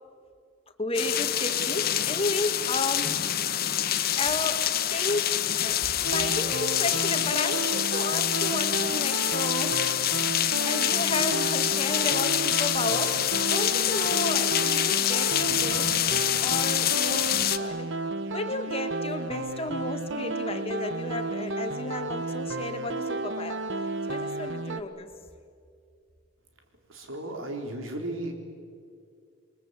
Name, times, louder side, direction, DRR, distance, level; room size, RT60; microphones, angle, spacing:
voice 1, 0.8-3.3 3.6-3.9 4.2-9.9 10.6-16.0 16.4-17.9 18.3-23.6 24.1-25.1, left 2 dB, 30° left, 7 dB, 1.9 m, -33 dB
sound 1, 0.9-17.6, left 11 dB, 50° left, 1.1 m, -26 dB
sound 2, 6.0-24.8, right 2 dB, 65° right, 1.2 m, -32 dB
voice 2, 26.9-28.3, right 1 dB, 90° right, 3 dB, 4.1 m, -35 dB
29.0 x 22.5 x 8.3 m, 2.3 s
head